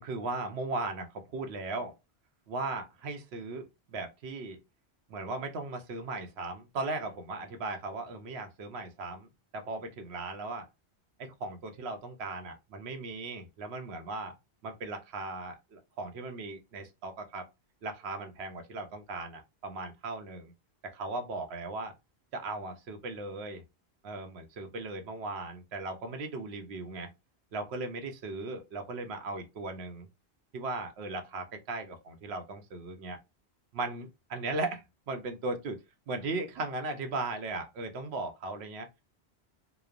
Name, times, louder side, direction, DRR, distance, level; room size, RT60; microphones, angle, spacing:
voice 1, 0.0-1.9 2.5-4.6 5.1-9.3 9.5-10.7 11.2-14.3 14.6-17.5 17.8-20.5 20.8-21.9 22.3-23.6 24.0-27.1 27.5-30.1 30.5-33.2 33.7-35.8 36.1-38.9, right 3 dB, 80° right, 0.9 m, -37 dB
3.0 x 2.0 x 2.4 m
omnidirectional pair, 1.1 m